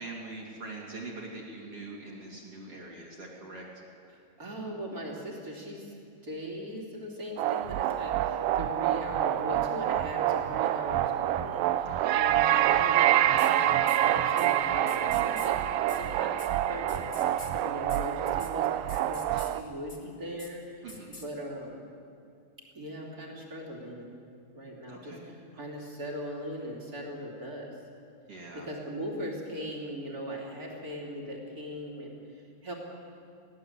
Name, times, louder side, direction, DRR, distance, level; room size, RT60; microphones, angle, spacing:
voice 1, 0.0-3.8 11.8-12.2 20.8-21.1 24.9-25.2 25.5-25.6 28.3-28.7, right 2 dB, 40° right, -3 dB, 3.3 m, -43 dB
voice 2, 4.1-5.9 6.2-21.8 22.7-24.1 24.5-27.7 28.5-32.7, equal, 25° right, -2 dB, 3.2 m, -39 dB
sound 1, 7.4-19.6, right 12 dB, 80° right, 2.1 m, -26 dB
sound 2, 13.4-13.5 13.9-14.0 14.4-14.5 14.9-15.5 15.9-16.0 16.4-16.5 16.9-17.5 17.9-18.0 18.3-18.5 18.9-19.5 19.9-20.0 20.4-20.5 20.9-21.3, left 2 dB, 20° left, 0.9 m, -45 dB
21.5 x 16.0 x 8.2 m, 2.5 s
omnidirectional pair, 4.4 m